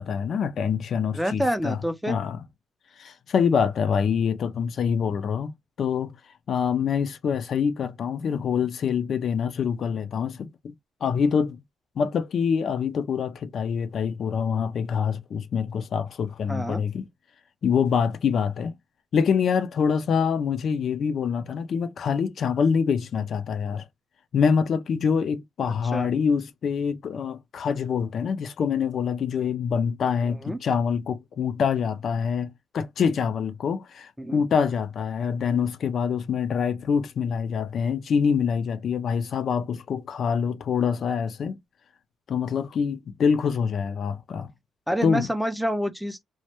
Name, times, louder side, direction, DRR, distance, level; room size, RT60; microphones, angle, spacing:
voice 1, 0.0-1.8 2.1-2.4 3.0-6.1 6.5-10.7 11.0-11.6 12.0-17.1 17.6-18.7 19.1-23.8 24.3-41.6 42.3-44.5 45.0-45.3, left 6 dB, 60° left, 0.4 m, -25 dB
voice 2, 1.1-2.2 16.5-16.8 25.6-26.1 30.2-30.6 34.2-34.4 44.9-46.2, equal, 5° right, 0.4 m, -28 dB
2.1 x 2.1 x 2.8 m
cardioid pair, 90°, 0 cm